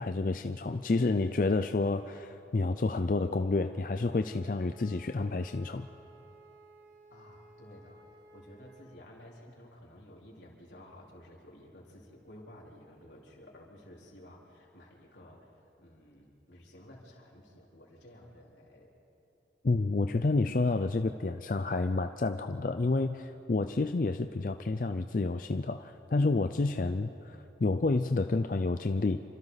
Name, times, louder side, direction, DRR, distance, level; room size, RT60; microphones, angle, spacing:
voice 1, 0.0-5.9 19.6-29.2, left 3 dB, 50° left, 8 dB, 0.5 m, -29 dB
Wind instrument woodwind instrument, 4.1-8.9, right 1 dB, 40° right, 4.0 m, -56 dB
voice 2, 7.1-8.0 8.3-18.9, left 1 dB, 90° left, -3 dB, 4.1 m, -53 dB
28.5 x 25.5 x 4.1 m, 2.9 s
head